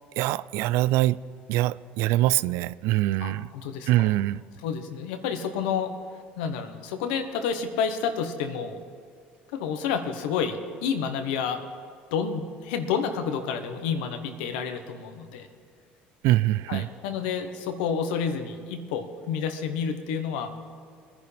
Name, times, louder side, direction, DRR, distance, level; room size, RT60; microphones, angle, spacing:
voice 1, 0.2-1.2 1.5-3.5 3.9-4.4 16.2-16.9, right 15 dB, 75° right, 0.3 m, -23 dB
voice 2, 3.2-4.1 4.6-5.9 6.4-8.8 9.5-11.6 12.1-15.5 16.7-20.5, left 6 dB, 85° left, 1.2 m, -29 dB
21.5 x 10.5 x 3.4 m
supercardioid pair, 75°, 5 cm